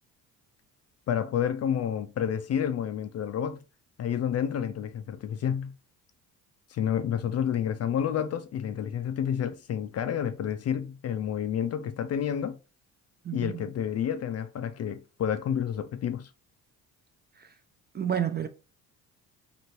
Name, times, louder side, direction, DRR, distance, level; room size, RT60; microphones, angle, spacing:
voice 1, 1.1-3.6 4.0-5.7 6.7-12.6 13.3-16.3, left 8 dB, 40° left, 0.4 m, -29 dB
voice 2, 13.3-13.6 17.9-18.5, right 9 dB, 25° right, 0.4 m, -29 dB
2.9 x 2.6 x 2.9 m
hypercardioid pair, 60°, 43 cm